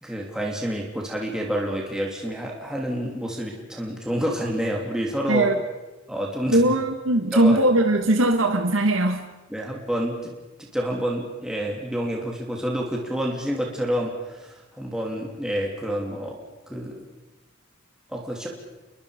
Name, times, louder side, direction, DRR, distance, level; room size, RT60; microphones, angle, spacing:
voice 1, 0.0-5.5 6.1-6.6 7.3-7.6 9.5-10.3 10.6-16.4 16.7-17.0 18.1-18.5, equal, 5° right, -2 dB, 3.0 m, -28 dB
voice 2, 6.5-9.2, right 1 dB, 75° right, 4 dB, 1.7 m, -20 dB
29.0 x 23.0 x 5.2 m, 1.1 s
head